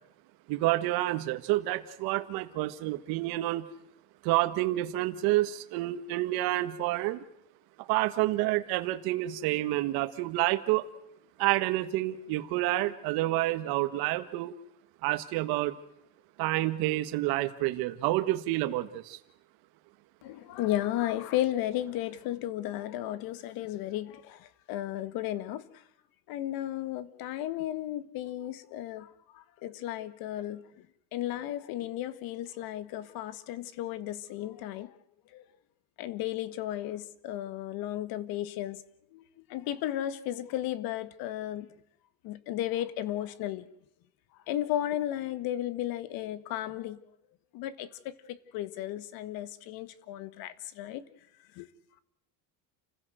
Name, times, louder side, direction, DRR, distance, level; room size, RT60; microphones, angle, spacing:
voice 1, 0.5-3.6 4.2-7.2 7.8-10.8 11.4-14.5 15.0-15.7 16.4-19.2, right 16 dB, 60° right, 1.6 m, -29 dB
voice 2, 20.2-25.8 26.3-30.8 31.1-35.0 35.3-35.4 36.0-38.8 39.1-41.7 42.2-43.7 44.5-47.0 47.5-51.0 51.5-51.7, left 13 dB, 60° left, 1.8 m, -34 dB
29.5 x 15.5 x 7.9 m
cardioid pair, 150°, 41 cm